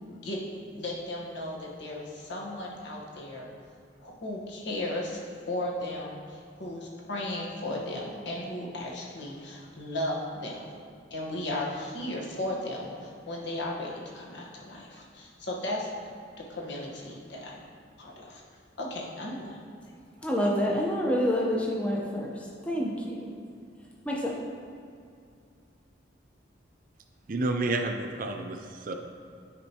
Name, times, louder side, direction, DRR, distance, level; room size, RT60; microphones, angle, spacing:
voice 1, 0.1-0.4 0.7-3.5 4.0-5.2 5.5-10.7 11.1-15.9 16.5-17.6 18.0-18.4 18.8-19.6, left 1 dB, 70° left, -3 dB, 1.1 m, -35 dB
voice 2, 20.2-23.3 24.0-24.3, equal, 5° left, -3 dB, 0.6 m, -28 dB
voice 3, 27.3-28.9, right 2 dB, 45° right, 4 dB, 0.4 m, -30 dB
9.9 x 4.4 x 2.8 m, 2.4 s
head